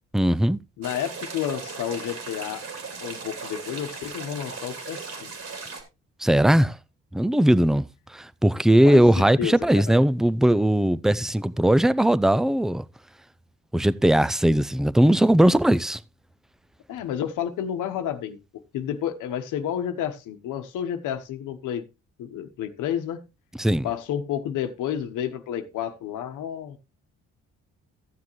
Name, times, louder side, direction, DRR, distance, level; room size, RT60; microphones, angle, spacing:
voice 1, 0.1-0.6 6.2-6.8 7.1-12.8 13.7-16.0 23.6-23.9, right 1 dB, ahead, 0.4 m, -19 dB
voice 2, 0.8-2.6 3.0-5.3 8.8-9.9 16.9-18.4 18.7-21.9 22.2-23.2 23.8-26.8, left 9 dB, 85° left, 1.0 m, -30 dB
sound 1, 0.8-5.8, right 4 dB, 55° right, 3.1 m, -37 dB
14.0 x 7.4 x 3.1 m
cardioid pair, 90°, 30 cm